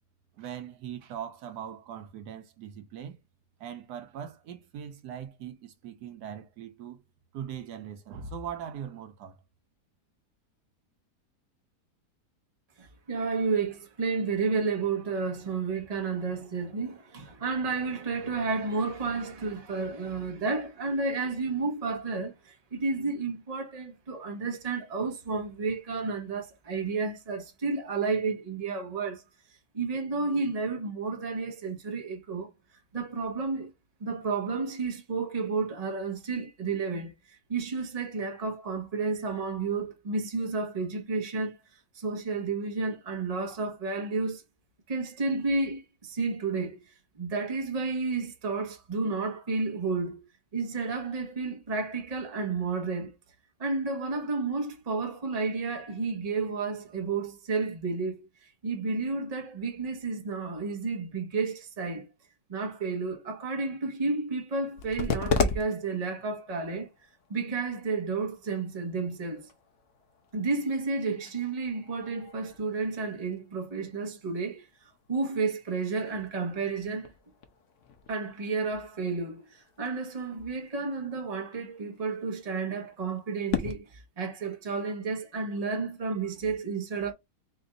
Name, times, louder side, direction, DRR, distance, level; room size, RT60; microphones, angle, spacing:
voice 1, 0.4-3.2 3.6-7.0 7.3-9.4, right 8 dB, 75° right, 1.3 m, -40 dB
voice 2, 12.8-29.2 29.7-32.5 32.9-33.7 34.0-44.4 44.9-50.3 50.5-53.1 53.6-62.1 62.5-66.9 67.3-69.5 70.3-77.1 78.1-87.1, right 4 dB, 25° right, 1.0 m, -31 dB
sound 1, 64.6-83.7, left 5 dB, 60° left, 1.0 m, -38 dB
4.3 x 2.6 x 3.9 m
omnidirectional pair, 1.8 m